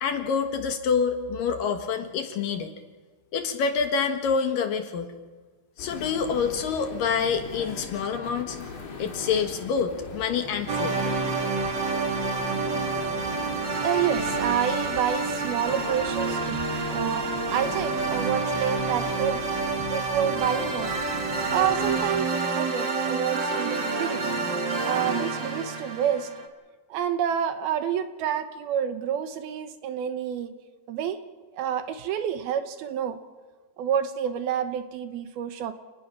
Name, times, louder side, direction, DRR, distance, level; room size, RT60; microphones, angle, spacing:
voice 1, 0.0-2.7 3.3-5.1 5.8-8.6 9.0-10.9, left 6 dB, 65° left, 6 dB, 2.7 m, -27 dB
sound 1, 5.8-22.2, left 4 dB, 80° left, 5.5 m, -39 dB
sound 2, 10.7-26.5, right 4 dB, 40° right, 1.7 m, -28 dB
voice 2, 13.8-16.6 16.9-19.4 19.9-20.9 21.5-24.3 24.9-26.3 26.9-30.5 30.9-31.2 31.5-33.2 33.8-35.7, right 9 dB, 75° right, 9 dB, 2.8 m, -28 dB
28.5 x 19.5 x 6.0 m, 1.3 s
omnidirectional pair, 4.7 m